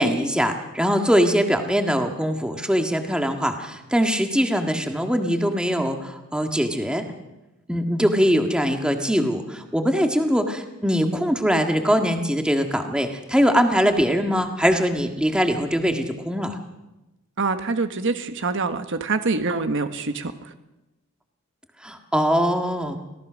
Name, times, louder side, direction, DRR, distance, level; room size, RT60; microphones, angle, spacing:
voice 1, 0.0-7.0 7.7-16.6 21.8-23.0, equal, 5° right, 4 dB, 1.7 m, -22 dB
voice 2, 17.4-20.3, right 3 dB, 60° right, 8 dB, 1.2 m, -25 dB
24.5 x 17.5 x 6.3 m, 1.0 s
head